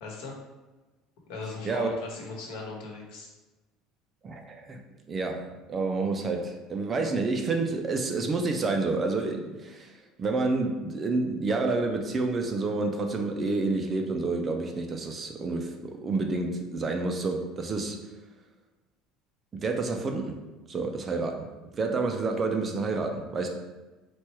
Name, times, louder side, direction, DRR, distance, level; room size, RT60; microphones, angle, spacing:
voice 1, 0.0-0.3 1.3-3.3, left 3 dB, 65° left, -1 dB, 1.1 m, -38 dB
voice 2, 4.2-9.9 10.2-18.1 19.5-20.3 20.7-23.5, right 3 dB, 20° right, 3 dB, 0.3 m, -29 dB
4.4 x 2.2 x 4.4 m, 1.2 s
cardioid pair, 175°, 0 cm